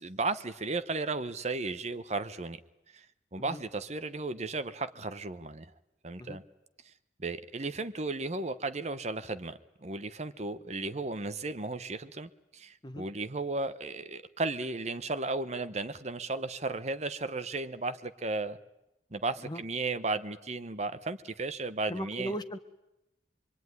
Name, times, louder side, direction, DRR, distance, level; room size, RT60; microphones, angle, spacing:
voice 1, 0.0-2.6 2.9-3.1 3.3-5.7 6.0-6.4 6.9-7.0 7.2-18.6 19.1-22.3, right 3 dB, 40° right, 1.0 m, -35 dB
voice 2, 21.9-22.6, equal, 25° left, 1.3 m, -37 dB
24.5 x 24.5 x 9.6 m
head